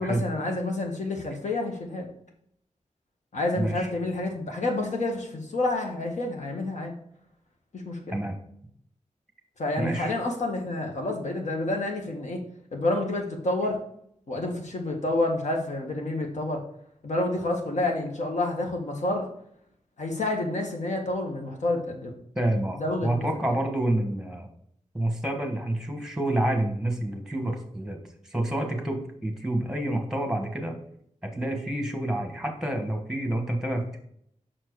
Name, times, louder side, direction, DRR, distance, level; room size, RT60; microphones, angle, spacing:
voice 1, 0.0-2.1 3.3-6.9 7.7-8.2 9.6-12.4 12.7-13.8 14.3-16.6 17.0-19.3 20.0-22.1 22.8-23.3, left 2 dB, 70° left, 1 dB, 1.7 m, -29 dB
voice 2, 3.6-3.9 8.1-8.4 9.8-10.1 22.3-24.5 24.9-28.0 28.3-30.7 31.2-34.0, right 1 dB, 5° right, 4 dB, 1.5 m, -28 dB
6.1 x 4.6 x 4.7 m, 0.68 s
wide cardioid pair, 90°, 13 cm